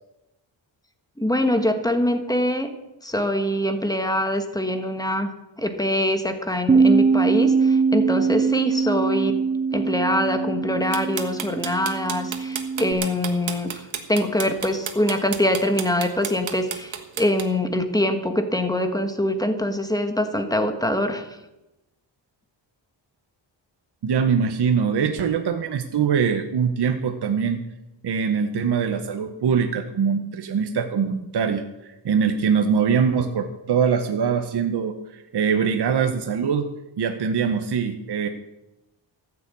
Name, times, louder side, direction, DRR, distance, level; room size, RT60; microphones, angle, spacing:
voice 1, 1.2-2.7 3.0-5.3 5.6-9.4 9.7-13.7 14.1-21.3, left 1 dB, 10° left, 6 dB, 1.2 m, -24 dB
Bass guitar, 6.7-12.9, right 5 dB, 20° right, 0.4 m, -22 dB
sound 1, 10.9-17.4, right 8 dB, 85° right, 1.5 m, -31 dB
voice 2, 24.0-27.6 28.0-36.7 37.0-38.3, right 6 dB, 60° right, 6 dB, 1.0 m, -23 dB
14.0 x 7.0 x 8.4 m, 0.96 s
wide cardioid pair, 145°, 45 cm